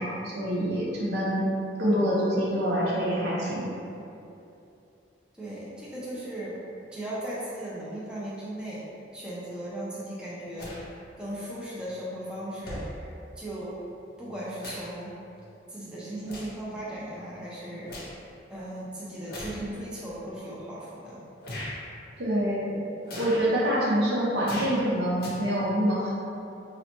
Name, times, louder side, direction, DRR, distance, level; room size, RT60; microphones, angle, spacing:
voice 1, 0.0-1.4 1.8-3.7 22.2-22.8 23.2-26.1, equal, 65° right, -5 dB, 0.7 m, -26 dB
voice 2, 5.4-6.6 6.9-8.8 9.1-10.7 11.2-13.8 14.2-15.1 15.7-18.0 18.5-21.2, right 1 dB, 5° right, -8 dB, 0.5 m, -37 dB
sound 1, 10.6-10.8 11.9-12.0 12.6-12.9 14.1-15.0 15.4-15.6 16.2-16.6 17.1-18.2 19.3-19.6 20.3-20.4 21.4-21.7 23.0-23.5 24.4-24.8 25.2-25.3, left 1 dB, 60° left, 0.6 m, -39 dB
4.0 x 2.1 x 2.9 m, 2.7 s
head